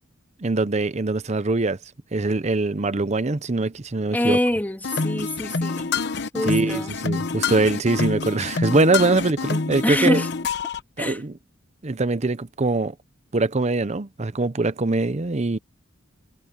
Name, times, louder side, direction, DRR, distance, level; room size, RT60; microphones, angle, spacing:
voice 1, 0.4-1.8 2.1-4.4 6.5-10.2 11.0-11.3 11.8-12.9 13.3-15.6, right 3 dB, 35° right, 0.7 m, -23 dB
voice 2, 4.1-5.9 6.3-6.9 9.8-10.3 11.0-11.2, left 1 dB, 10° left, 3.2 m, -25 dB
sound 1, 4.8-10.8, left 4 dB, 60° left, 1.0 m, -27 dB
head